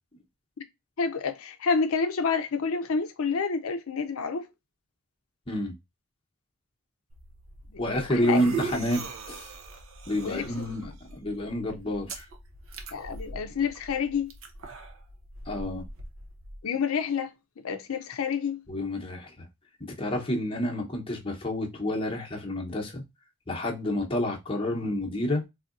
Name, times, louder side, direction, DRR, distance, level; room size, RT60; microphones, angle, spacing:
voice 1, 1.0-4.5 7.7-7.8 8.1-8.4 10.2-10.7 12.9-14.3 16.6-17.3 17.6-18.6, left 5 dB, 75° left, 0.5 m, -29 dB
sound 1, 7.1-16.6, right 4 dB, 70° right, 0.8 m, -41 dB
voice 2, 7.8-9.5 10.1-12.3 15.5-15.8 18.7-19.4 20.0-23.0 23.5-25.4, left 1 dB, 25° left, 0.9 m, -29 dB
4.0 x 2.7 x 2.4 m
head